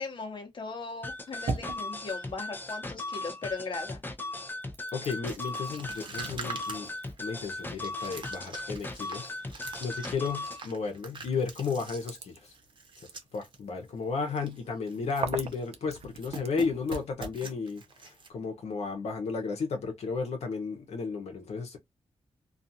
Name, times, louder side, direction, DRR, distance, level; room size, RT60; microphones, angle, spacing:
voice 1, 0.0-4.0, left 4 dB, 45° left, 0.9 m, -38 dB
sound 1, 0.9-3.5 3.9-17.1, right 5 dB, 80° right, 0.6 m, -44 dB
sound 2, 1.0-10.6, left 2 dB, 20° left, 0.5 m, -38 dB
voice 2, 4.9-6.9 7.2-12.5 13.3-21.8, left 5 dB, 80° left, 0.8 m, -33 dB
sound 3, 5.3-13.6 13.9-14.0 14.3-14.6 14.9-15.7 15.9-18.3, right 4 dB, 50° right, 0.9 m, -44 dB
2.4 x 2.4 x 2.7 m
wide cardioid pair, 105°, 11 cm